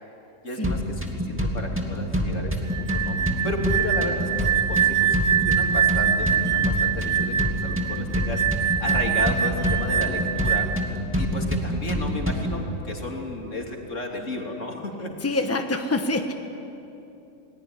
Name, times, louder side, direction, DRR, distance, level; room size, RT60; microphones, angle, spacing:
voice 1, 0.4-10.7 11.2-15.1, left 1 dB, 75° left, 1 dB, 3.5 m, -33 dB
sound 1, 0.6-12.6, equal, 10° right, 2.5 m, -27 dB
sound 2, 2.7-10.9, right 9 dB, 85° right, 2.0 m, -24 dB
voice 2, 15.2-16.3, left 2 dB, 10° left, 5 dB, 1.3 m, -26 dB
29.5 x 20.0 x 9.8 m, 2.9 s
omnidirectional pair, 1.3 m